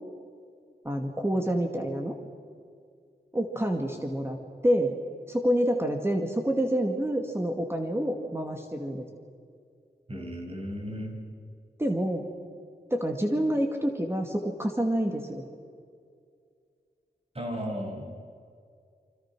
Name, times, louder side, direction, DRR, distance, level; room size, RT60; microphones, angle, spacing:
voice 1, 0.8-2.2 3.3-4.4 4.6-4.9 5.3-9.1 11.8-12.3 12.9-15.4, equal, 15° right, 3 dB, 2.3 m, -27 dB
voice 2, 10.1-11.2 17.3-18.1, equal, 35° right, 1 dB, 7.0 m, -35 dB
29.5 x 25.5 x 6.2 m, 2.3 s
wide cardioid pair, 80°, 17 cm